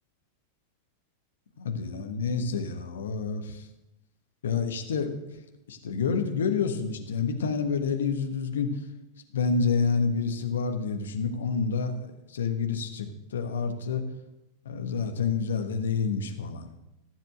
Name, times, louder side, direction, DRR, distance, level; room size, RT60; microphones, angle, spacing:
voice 1, 1.6-3.7 4.4-5.2 5.7-8.8 9.3-14.0 14.6-16.7, left 5 dB, 65° left, 6 dB, 1.3 m, -28 dB
14.5 x 7.5 x 6.5 m, 0.93 s
figure-of-eight pair, 90°, 0 cm